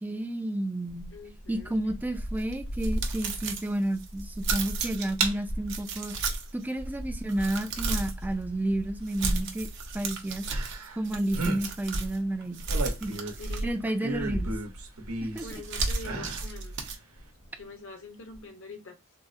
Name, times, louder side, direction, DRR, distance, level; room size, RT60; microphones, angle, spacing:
voice 1, 0.0-1.1 1.5-6.1 6.5-9.7 9.9-10.5 11.0-12.6 13.0-13.1 13.6-14.5 15.2-15.5, right 1 dB, 10° right, 0.3 m, -31 dB
Thunder / Rain, 0.9-10.6 11.0-13.0 13.6-18.4, equal, 80° left, 1.9 m, -40 dB
voice 2, 1.1-1.8 13.4-14.1 15.4-16.8 17.5-19.2, left 3 dB, 65° left, 0.8 m, -45 dB
sound 1, 2.4-5.2 5.6-6.6 7.1-8.2 9.0-12.2 12.5-14.0 15.3-17.0, right 3 dB, 55° right, 0.7 m, -33 dB
sound 2, 4.8-5.4 5.8-6.2 7.8-7.9 10.5-11.0 11.3-11.6 12.4-13.5 14.0-15.5 16.0-16.5 16.9-17.0, right 3 dB, 85° right, 0.9 m, -33 dB
3.6 x 2.0 x 2.5 m
head